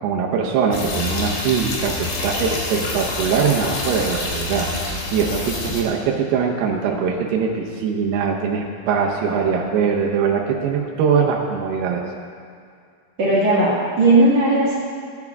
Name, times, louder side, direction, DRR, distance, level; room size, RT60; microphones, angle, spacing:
voice 1, 0.0-4.7 5.1-12.0, right 6 dB, 80° right, -1 dB, 2.8 m, -22 dB
sound 1, 0.7-5.8, left 3 dB, 75° left, 3.5 m, -27 dB
voice 2, 13.2-14.8, right 2 dB, 50° right, -8 dB, 2.7 m, -16 dB
15.5 x 9.4 x 3.5 m, 2.3 s
omnidirectional pair, 4.7 m